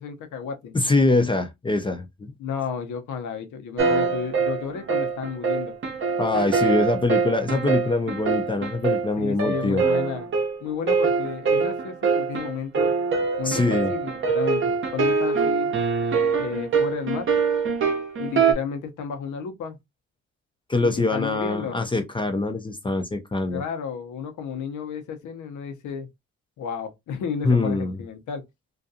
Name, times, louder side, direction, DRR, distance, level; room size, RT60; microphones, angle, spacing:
voice 1, 0.0-0.8 2.4-5.8 9.2-10.3 10.6-12.9 13.4-15.8 16.4-17.3 18.2-19.8 20.8-21.8 23.5-26.1 26.6-28.4, left 6 dB, 75° left, 0.8 m, -32 dB
voice 2, 0.7-2.3 6.2-9.8 13.5-13.9 20.7-23.6 27.4-28.0, left 2 dB, 15° left, 0.4 m, -23 dB
sound 1, 3.8-18.5, right 5 dB, 40° right, 0.7 m, -24 dB
2.5 x 2.3 x 2.6 m
cardioid pair, 90°, 30 cm